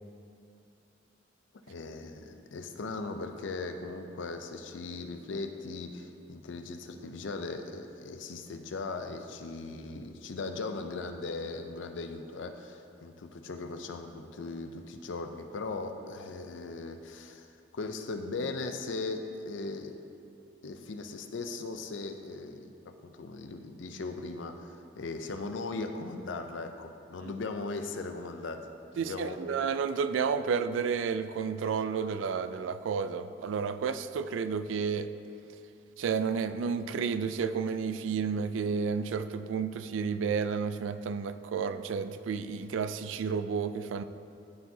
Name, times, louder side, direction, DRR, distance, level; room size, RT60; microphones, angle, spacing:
voice 1, 1.7-17.5 17.7-19.9 20.6-29.4, left 3 dB, 75° left, 6 dB, 0.5 m, -38 dB
voice 2, 29.0-35.1 36.0-44.0, right 6 dB, 85° right, 12 dB, 0.3 m, -31 dB
12.5 x 4.7 x 2.7 m, 2.6 s
head